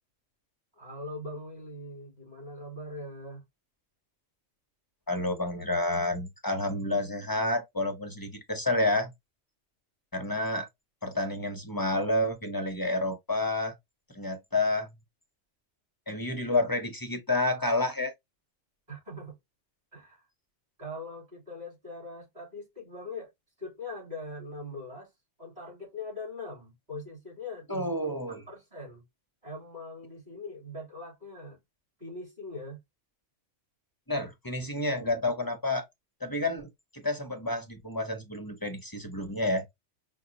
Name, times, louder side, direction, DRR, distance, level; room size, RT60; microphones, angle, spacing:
voice 1, 0.7-3.4 18.9-19.4 19.9-20.3 20.8-23.3 23.6-25.1 25.4-29.0 29.4-31.6 32.0-32.8, left 2 dB, 35° right, 2.9 m, -41 dB
voice 2, 5.1-9.1 10.1-10.7 11.0-13.7 14.1-14.9 16.1-18.1 27.7-28.4 34.1-35.8 36.2-36.7 36.9-39.7, left 2 dB, 25° left, 0.6 m, -29 dB
5.0 x 2.2 x 2.6 m
omnidirectional pair, 1.2 m